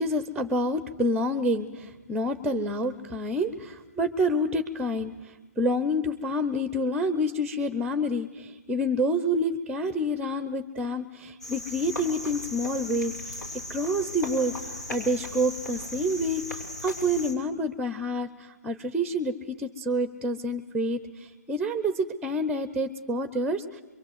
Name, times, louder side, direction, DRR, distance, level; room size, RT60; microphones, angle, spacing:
voice 1, 0.0-13.4 13.7-23.8, equal, 5° right, 12 dB, 0.8 m, -28 dB
Cricket, 11.4-17.3, left 1 dB, 80° left, 6.3 m, -37 dB
24.0 x 23.5 x 8.0 m, 1.1 s
hypercardioid pair, 155°, 9 cm